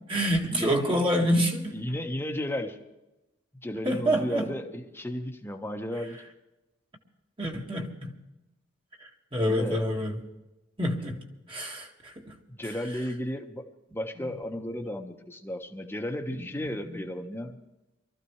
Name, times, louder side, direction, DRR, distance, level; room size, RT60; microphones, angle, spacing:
voice 1, 0.1-1.7 3.9-4.5 7.4-8.1 9.3-10.2 10.8-11.2 11.5-12.3 16.9-17.0, equal, 25° right, 1.9 m, -27 dB
voice 2, 1.7-2.8 3.6-6.2 9.4-9.8 12.5-17.6, left 1 dB, 10° left, 1.3 m, -34 dB
24.0 x 14.0 x 3.2 m
head